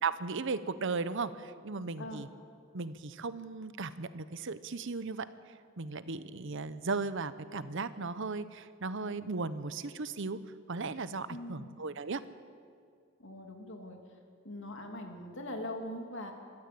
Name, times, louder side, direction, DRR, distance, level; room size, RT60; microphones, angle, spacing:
voice 1, 0.0-2.3 2.7-5.3 5.8-10.4 10.7-12.2, right 4 dB, 65° right, 14 dB, 0.9 m, -36 dB
voice 2, 11.3-11.7 13.2-14.0 14.4-16.3, left 1 dB, 65° left, 3 dB, 2.9 m, -41 dB
24.0 x 13.5 x 8.5 m, 2.2 s
head